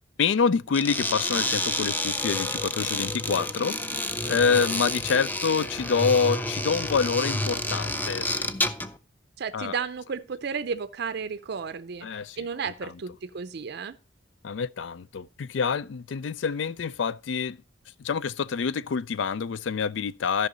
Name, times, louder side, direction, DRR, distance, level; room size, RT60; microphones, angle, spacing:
voice 1, 0.2-8.5 9.5-9.8 12.0-12.5 12.8-12.9 14.4-17.6 18.0-20.5, left 5 dB, 70° left, 0.4 m, -27 dB
sound 1, 0.7-9.0, left 2 dB, 10° left, 0.5 m, -29 dB
voice 2, 9.4-12.1 12.4-14.0, right 6 dB, 60° right, 0.5 m, -33 dB
13.5 x 5.7 x 3.9 m
head